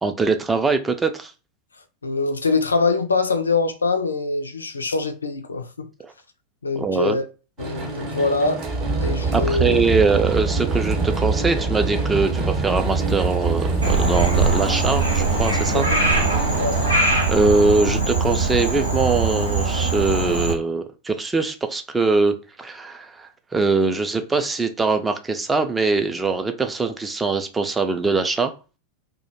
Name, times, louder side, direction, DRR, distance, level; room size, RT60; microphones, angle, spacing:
voice 1, 0.0-1.3 6.0-6.1 6.8-7.2 9.3-15.9 16.3-16.5 17.3-28.5, right 3 dB, 10° right, 0.3 m, -22 dB
voice 2, 2.0-5.9 6.6-7.2 7.6-8.6 9.0-10.0 15.7-16.0 16.6-16.8, left 3 dB, 75° left, 0.3 m, -24 dB
sound 1, 7.6-17.0, right 3 dB, 35° right, 0.7 m, -25 dB
Frog, 13.8-20.5, right 3 dB, 80° right, 0.7 m, -21 dB
2.3 x 2.1 x 2.8 m
figure-of-eight pair, 90°, 0 cm